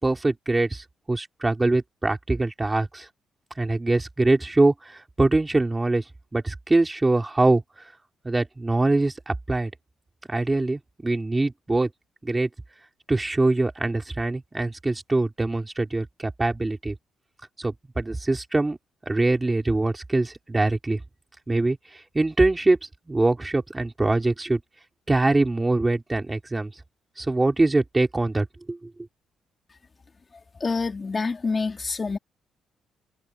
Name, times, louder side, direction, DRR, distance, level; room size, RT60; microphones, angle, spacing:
voice 1, 0.0-3.1 3.6-6.0 6.3-7.6 8.2-9.7 10.3-11.9 12.2-12.5 13.1-16.9 17.6-18.8 19.0-21.0 21.5-21.8 22.1-22.8 23.1-24.6 25.1-26.7 27.2-28.9, right 2 dB, 15° right, 5.0 m, -23 dB
voice 2, 30.6-32.2, left 4 dB, 30° left, 4.3 m, -27 dB
cardioid pair, 90°, 0 cm